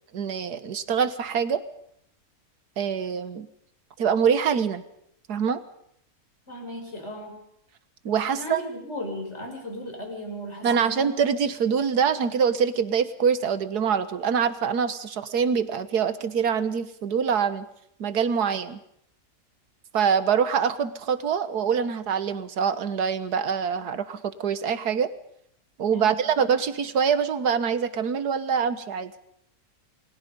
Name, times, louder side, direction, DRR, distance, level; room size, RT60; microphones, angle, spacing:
voice 1, 0.1-1.6 2.8-3.5 4.0-4.8 5.3-5.6 8.1-8.6 10.6-17.7 18.0-18.8 19.9-25.1 25.8-29.1, right 7 dB, 85° right, 12 dB, 1.8 m, -24 dB
voice 2, 6.5-7.4 8.2-11.1 25.9-26.3, left 1 dB, 45° left, 1 dB, 6.7 m, -36 dB
29.0 x 21.5 x 5.4 m, 0.74 s
omnidirectional pair, 1.6 m